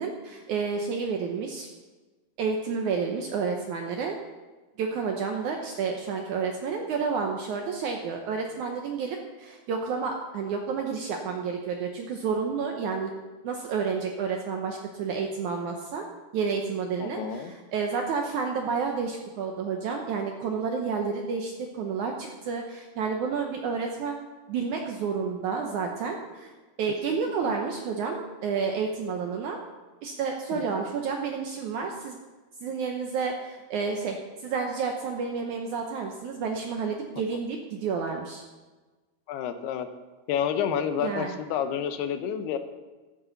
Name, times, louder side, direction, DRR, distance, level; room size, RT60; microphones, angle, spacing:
voice 1, 0.0-1.7 2.4-4.2 4.8-13.1 13.4-16.1 16.3-24.2 24.5-26.5 26.8-29.6 30.0-32.2 32.6-34.2 34.4-38.4 41.0-41.3, right 5 dB, 75° right, 2 dB, 1.8 m, -30 dB
voice 2, 17.0-17.5 27.4-27.5 30.5-30.6 39.3-39.9 40.3-42.6, left 8 dB, 90° left, 9 dB, 2.9 m, -29 dB
14.0 x 12.0 x 4.0 m, 1.2 s
omnidirectional pair, 4.5 m